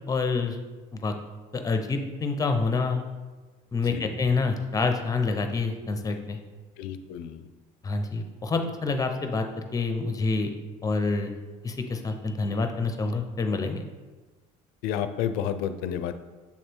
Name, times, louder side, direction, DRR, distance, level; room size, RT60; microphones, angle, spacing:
voice 1, 0.1-0.6 0.9-1.1 1.5-3.0 3.7-6.4 7.8-10.5 10.8-11.3 11.6-13.8, left 4 dB, 25° left, 6 dB, 0.7 m, -27 dB
voice 2, 3.8-4.2 6.8-7.5 14.8-16.1, left 9 dB, 85° left, 10 dB, 0.5 m, -31 dB
7.0 x 3.2 x 4.5 m, 1.3 s
cardioid pair, 105°, 16 cm